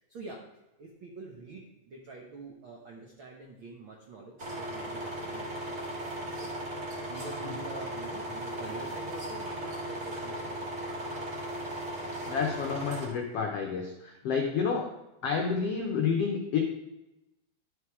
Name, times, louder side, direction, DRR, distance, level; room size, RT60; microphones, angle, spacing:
voice 1, 0.1-0.4 0.8-6.5 6.8-10.9, right 3 dB, 85° right, 0 dB, 1.1 m, -46 dB
sound 1, 4.4-13.1, right 1 dB, 35° right, 1.4 m, -37 dB
voice 2, 11.8-14.9 15.2-16.6, left 6 dB, 80° left, 2 dB, 1.3 m, -30 dB
12.0 x 5.1 x 4.8 m, 0.95 s
omnidirectional pair, 3.9 m